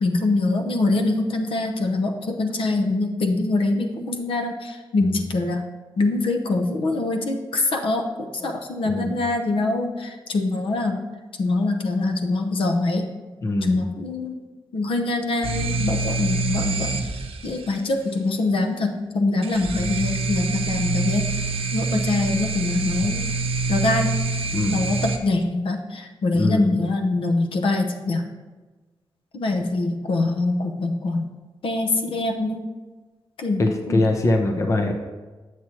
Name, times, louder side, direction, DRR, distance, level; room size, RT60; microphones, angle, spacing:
voice 1, 0.0-5.7 6.0-11.0 11.4-13.1 13.6-14.4 14.7-17.0 17.4-21.5 21.7-23.3 23.7-24.1 24.7-28.2 29.3-31.3 31.6-32.6 33.4-34.0, left 2 dB, 75° left, 4 dB, 0.8 m, -24 dB
voice 2, 13.4-13.8 24.5-24.8 26.3-26.7 33.6-34.9, left 2 dB, 35° left, 5 dB, 0.6 m, -22 dB
sound 1, 15.4-17.8 19.4-25.2, right 3 dB, 90° right, 0.6 m, -26 dB
7.6 x 7.5 x 2.9 m, 1.3 s
wide cardioid pair, 155°, 9 cm